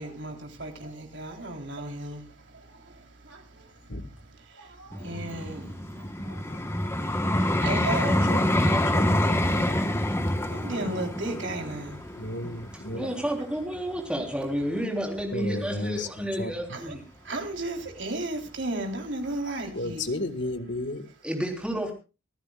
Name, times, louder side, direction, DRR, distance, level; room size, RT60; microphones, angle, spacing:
voice 1, 0.0-8.4 9.3-9.7 10.0-12.4 12.9-13.1 16.7-16.9 17.2-20.1, right 2 dB, 60° right, 3.6 m, -36 dB
Vehicle, 4.9-14.0 14.6-14.8, left 1 dB, 10° left, 1.2 m, -27 dB
voice 2, 6.2-6.6 8.3-8.5 8.7-9.7 12.1-13.1 15.3-16.8 19.7-21.1, left 1 dB, 55° left, 1.8 m, -34 dB
voice 3, 12.9-17.0 21.2-21.9, equal, 5° right, 3.6 m, -30 dB
25.5 x 14.5 x 2.4 m
head